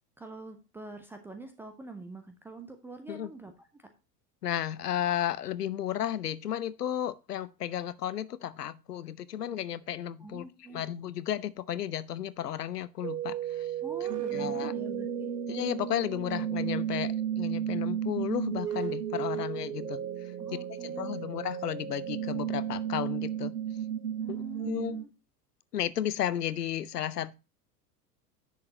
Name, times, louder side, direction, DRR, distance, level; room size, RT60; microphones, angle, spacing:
voice 1, 0.2-3.9 10.2-10.8 13.8-15.3 20.4-21.3 24.2-25.1, right 3 dB, 5° right, 0.4 m, -45 dB
voice 2, 4.4-10.5 10.7-13.7 14.2-14.7 15.5-23.5 24.3-25.0 25.7-27.3, left 11 dB, 70° left, 0.7 m, -33 dB
sound 1, 13.0-25.0, right 10 dB, 75° right, 1.1 m, -33 dB
10.0 x 6.5 x 2.8 m
figure-of-eight pair, 90°, 49 cm